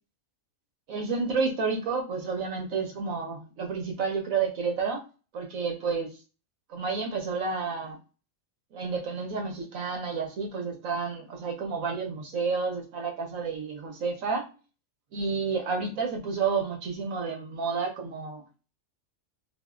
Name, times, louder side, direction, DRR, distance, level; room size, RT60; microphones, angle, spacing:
voice 1, 0.9-5.0 5.3-6.1 6.7-8.0 8.7-14.5 15.1-18.4, right 5 dB, 75° right, 2 dB, 1.3 m, -30 dB
3.9 x 2.0 x 2.4 m, 0.32 s
omnidirectional pair, 1.4 m